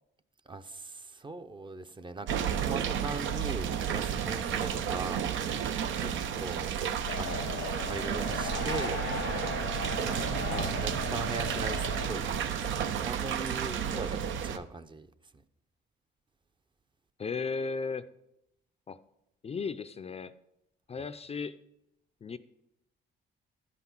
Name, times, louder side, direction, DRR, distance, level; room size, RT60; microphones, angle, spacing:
voice 1, 0.5-5.7 6.0-6.7 7.1-9.0 10.0-15.1, right 3 dB, 25° right, 10 dB, 0.6 m, -40 dB
sound 1, 2.3-14.6, right 8 dB, 75° right, 0.7 m, -32 dB
sound 2, 7.1-12.1, left 8 dB, 70° left, 0.6 m, -38 dB
voice 2, 10.4-10.7 17.2-18.1 18.9-19.0 19.4-20.3 20.9-21.6 22.2-22.4, left 5 dB, 30° left, 13 dB, 0.4 m, -35 dB
11.0 x 5.8 x 6.0 m, 0.84 s
cardioid pair, 90°, 20 cm